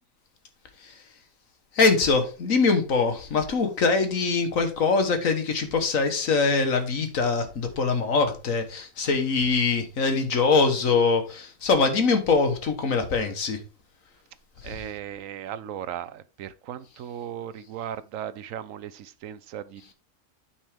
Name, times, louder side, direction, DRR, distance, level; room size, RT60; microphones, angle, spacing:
voice 1, 1.7-13.6 14.6-14.8, left 4 dB, 60° left, 1.7 m, -23 dB
voice 2, 14.6-19.9, right 10 dB, 70° right, 0.9 m, -37 dB
9.0 x 5.7 x 3.5 m
omnidirectional pair, 1.6 m